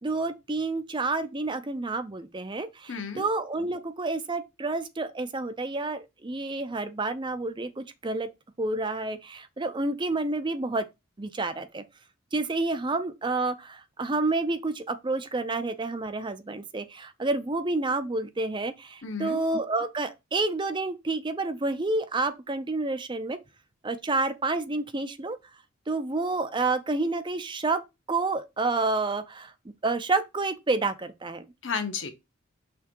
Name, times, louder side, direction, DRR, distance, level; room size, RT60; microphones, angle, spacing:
voice 1, 0.0-8.3 8.6-10.8 11.2-11.8 12.3-23.4 23.8-25.4 25.9-27.8 28.1-29.5 29.8-31.5, right 3 dB, 25° right, 0.5 m, -29 dB
voice 2, 2.9-3.2 19.0-19.4 31.6-32.1, left 5 dB, 65° left, 1.3 m, -32 dB
5.9 x 3.6 x 4.6 m
head